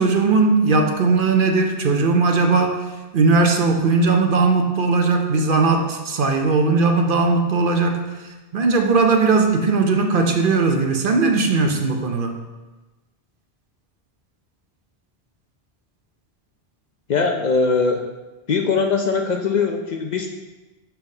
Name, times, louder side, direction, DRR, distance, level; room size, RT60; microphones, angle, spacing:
voice 1, 0.0-2.8 3.1-12.4, right 4 dB, 60° right, 4 dB, 0.8 m, -18 dB
voice 2, 17.1-18.0 18.5-20.3, left 4 dB, 50° left, 3 dB, 0.6 m, -21 dB
5.7 x 4.5 x 5.3 m, 1.1 s
omnidirectional pair, 1.1 m